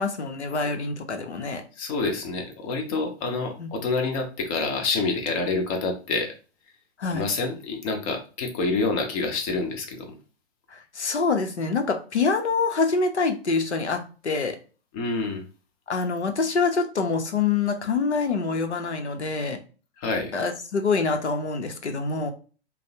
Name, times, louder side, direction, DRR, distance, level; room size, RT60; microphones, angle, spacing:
voice 1, 0.0-1.6 3.6-3.7 7.0-7.3 10.7-14.6 15.9-19.6 20.3-22.3, left 4 dB, 85° left, 6 dB, 0.7 m, -25 dB
voice 2, 1.8-6.3 7.1-10.1 14.9-15.4 20.0-20.4, left 3 dB, 30° left, 4 dB, 0.7 m, -27 dB
3.1 x 2.0 x 2.7 m, 0.37 s
figure-of-eight pair, 115°, 33 cm